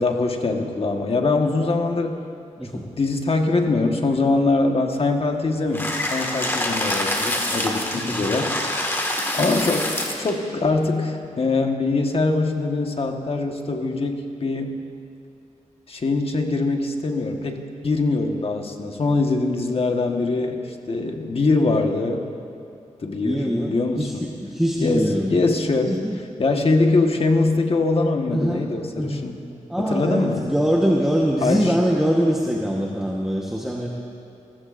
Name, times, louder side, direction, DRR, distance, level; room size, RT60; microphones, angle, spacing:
voice 1, 0.0-2.2 2.7-8.5 9.4-14.7 15.9-20.6 20.9-22.2 23.0-24.3 24.8-26.0 26.4-29.4 29.8-30.4 31.4-31.8, left 3 dB, 50° left, 3 dB, 1.4 m, -23 dB
sound 1, 5.7-10.3, left 1 dB, 15° left, 1.8 m, -26 dB
voice 2, 23.2-24.1 24.4-25.3 25.9-26.2 28.3-28.7 28.9-29.2 29.7-33.9, equal, 5° right, -3 dB, 1.2 m, -23 dB
29.0 x 15.0 x 2.6 m, 2.5 s
wide cardioid pair, 90°, 13 cm